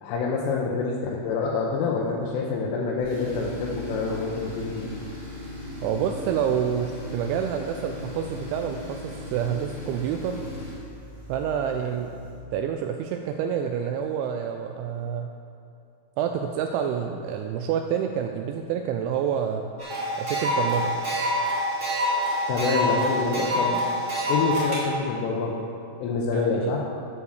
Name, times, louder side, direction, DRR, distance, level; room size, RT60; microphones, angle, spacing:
voice 1, 0.0-4.8 22.5-23.8 24.3-25.6 26.0-26.8, left 4 dB, 85° left, -3 dB, 3.4 m, -26 dB
Tools, 3.0-12.5, left 1 dB, 40° right, 0.8 m, -38 dB
voice 2, 5.8-10.4 11.3-12.2 12.5-15.3 16.2-19.7 20.2-21.0 26.3-26.7, right 8 dB, 85° right, 5 dB, 2.7 m, -28 dB
sound 1, 19.8-24.8, equal, 20° right, 2.2 m, -26 dB
9.7 x 7.1 x 6.5 m, 2.7 s
omnidirectional pair, 5.6 m